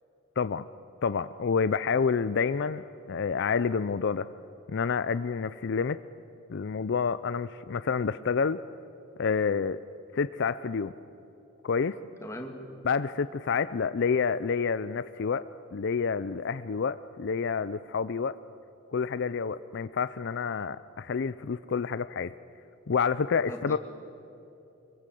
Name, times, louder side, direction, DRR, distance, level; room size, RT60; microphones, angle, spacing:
voice 1, 1.0-4.3 4.7-6.0 6.5-8.6 9.2-9.8 10.1-10.9 11.6-12.0 12.8-18.4 18.9-22.3 22.9-23.8, left 5 dB, 55° left, 14 dB, 0.4 m, -28 dB
voice 2, 12.2-12.6 23.5-23.8, equal, 15° left, 3 dB, 2.4 m, -39 dB
25.5 x 22.5 x 7.7 m, 3.0 s
head